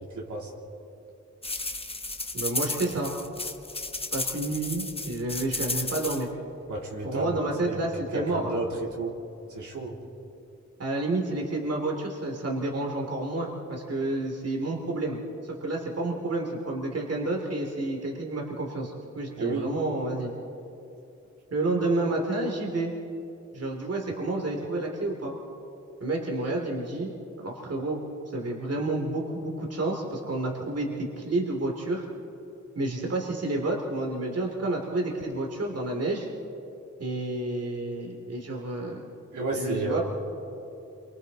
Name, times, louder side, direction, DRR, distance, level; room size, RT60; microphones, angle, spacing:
voice 1, 0.1-0.5 6.7-7.3 7.6-7.8 8.1-8.7 9.0-9.1 9.5-10.0 19.4-19.7 39.3-40.0, right 3 dB, 75° right, -2 dB, 3.2 m, -31 dB
sound 1, 1.4-6.2, left 2 dB, 20° left, 1.0 m, -33 dB
voice 2, 2.3-3.2 4.1-6.3 7.0-8.6 10.8-20.3 21.5-22.9 23.5-25.3 26.0-27.1 27.4-28.0 28.3-32.1 32.7-36.3 37.0-39.1 39.5-40.0, right 2 dB, 55° right, 0 dB, 2.8 m, -30 dB
28.0 x 24.5 x 4.1 m, 2.9 s
wide cardioid pair, 90°, 30 cm